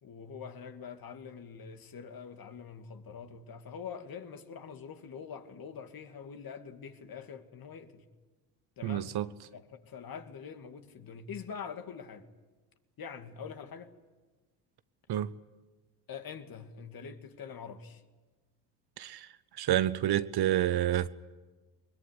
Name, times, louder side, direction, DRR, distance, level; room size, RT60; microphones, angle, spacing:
voice 1, 0.0-8.1 8.8-9.1 9.5-12.3 13.0-13.9 16.1-18.0, left 6 dB, 45° left, 2.4 m, -44 dB
voice 2, 8.8-9.3 15.1-15.3 19.0-19.3 19.6-21.1, right 12 dB, 55° right, 1.0 m, -28 dB
21.5 x 21.0 x 9.8 m
supercardioid pair, 75°, 47 cm